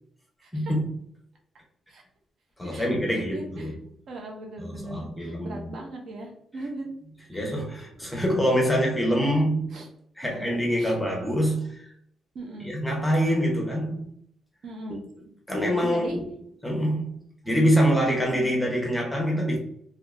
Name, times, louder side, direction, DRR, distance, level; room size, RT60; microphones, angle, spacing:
voice 1, 0.4-0.7 1.9-2.0 2.7-3.7 4.1-6.9 7.3-7.4 9.2-9.4 9.7-9.9 10.2-10.9 12.3-12.7 14.6-15.2 15.8-16.2 17.9-18.2, right 2 dB, 55° right, 0.7 m, -39 dB
voice 2, 2.6-3.7 4.6-5.7 7.3-9.8 10.2-11.8 12.6-14.1 15.5-16.2 16.6-17.1 17.4-19.6, equal, 5° left, 0.7 m, -25 dB
3.6 x 2.8 x 2.4 m
wide cardioid pair, 180°, 0 cm